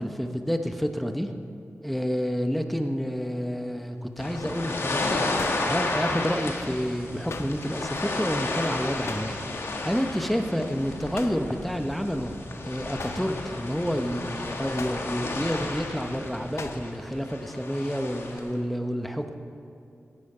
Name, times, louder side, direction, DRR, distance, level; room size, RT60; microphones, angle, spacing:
voice 1, 0.0-1.3 1.8-5.2 5.6-9.4 9.8-12.3 12.6-19.3, equal, ahead, 6 dB, 0.8 m, -29 dB
sound 1, 3.1-3.5 4.0-6.5 6.8-9.7 10.0-10.2 10.6-12.5 12.8-17.2 17.5-18.4, left 4 dB, 90° left, 0.7 m, -43 dB
sound 2, 4.2-18.5, left 2 dB, 70° left, 1.4 m, -32 dB
15.5 x 9.9 x 4.9 m, 2.5 s
wide cardioid pair, 75°, 4 cm